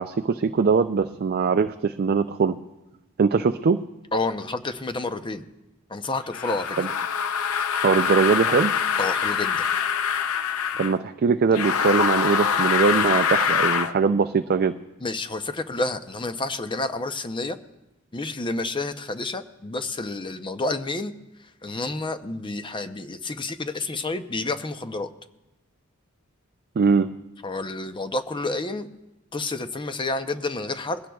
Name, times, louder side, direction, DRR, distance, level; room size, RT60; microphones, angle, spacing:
voice 1, 0.0-2.6 3.2-3.8 6.8-6.9 7.8-8.7 10.8-14.7 26.8-27.1, right 5 dB, 45° right, 7 dB, 0.4 m, -21 dB
voice 2, 4.1-5.5 5.9-6.8 9.0-9.6 15.0-17.6 18.1-21.1 21.4-25.1 27.4-28.9 29.3-31.0, left 2 dB, 20° left, 9 dB, 0.6 m, -29 dB
sound 1, 6.3-11.0 11.5-13.9, left 7 dB, 70° left, 0.6 m, -24 dB
21.5 x 16.5 x 2.3 m, 0.97 s
head